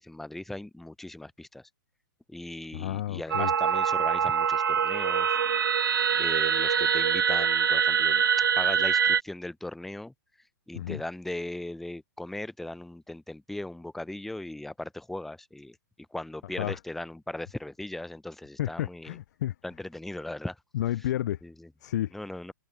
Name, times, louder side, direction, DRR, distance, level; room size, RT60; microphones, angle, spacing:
voice 1, 0.0-1.7 2.3-5.4 6.2-10.1 10.7-15.8 16.1-19.2 19.6-20.6 21.4-21.7 22.1-22.5, left 1 dB, ahead, 0.6 m, -38 dB
voice 2, 2.7-3.5 10.7-11.0 16.6-16.8 18.6-19.5 20.7-21.4 21.8-22.1, left 13 dB, 55° left, 0.4 m, -31 dB
sound 1, 3.3-9.2, right 7 dB, 85° right, 0.6 m, -24 dB
hypercardioid pair, 130°, 11 cm